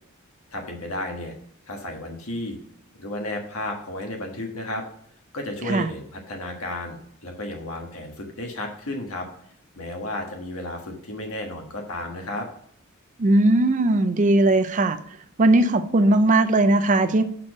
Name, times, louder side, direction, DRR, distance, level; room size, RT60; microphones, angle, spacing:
voice 1, 0.5-1.3 1.7-2.6 3.0-4.8 5.3-9.3 9.8-12.5, left 1 dB, 75° left, 2 dB, 1.5 m, -33 dB
voice 2, 13.2-15.0 15.4-17.2, right 2 dB, 35° right, 10 dB, 0.5 m, -18 dB
6.2 x 4.5 x 6.0 m, 0.66 s
head